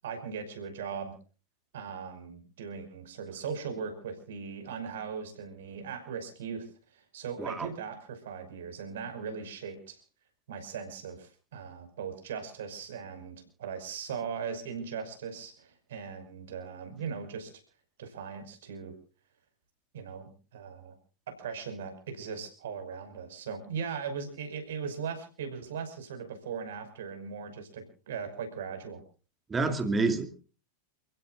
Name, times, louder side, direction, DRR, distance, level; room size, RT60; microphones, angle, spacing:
voice 1, 0.0-1.2 1.7-10.0 10.5-17.5 18.0-19.0 19.9-20.9 21.3-29.0, right 6 dB, 60° right, 7 dB, 5.7 m, -39 dB
voice 2, 7.4-7.7 29.5-30.4, right 3 dB, 15° right, 8 dB, 2.5 m, -28 dB
29.0 x 16.5 x 2.5 m, 0.37 s
figure-of-eight pair, 90°, 0 cm